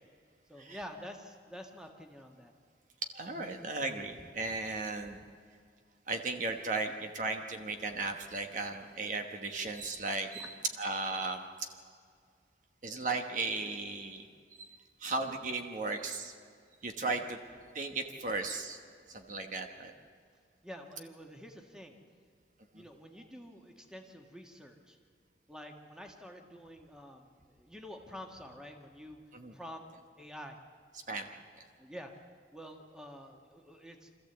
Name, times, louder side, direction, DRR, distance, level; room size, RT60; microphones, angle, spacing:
voice 1, 0.5-2.5 19.1-19.2 20.6-22.0 22.7-25.0 25.5-29.2 29.5-29.8 30.2-30.6 31.8-32.1 32.5-34.1, equal, 5° right, 3 dB, 1.5 m, -48 dB
voice 2, 3.1-5.2 6.1-11.4 12.8-14.2 14.6-16.3 16.8-17.4 17.7-18.8 19.1-19.9 22.7-22.8 29.3-29.5 31.1-31.3, right 3 dB, 45° right, 5 dB, 1.2 m, -36 dB
26.0 x 14.0 x 8.0 m, 2.2 s
head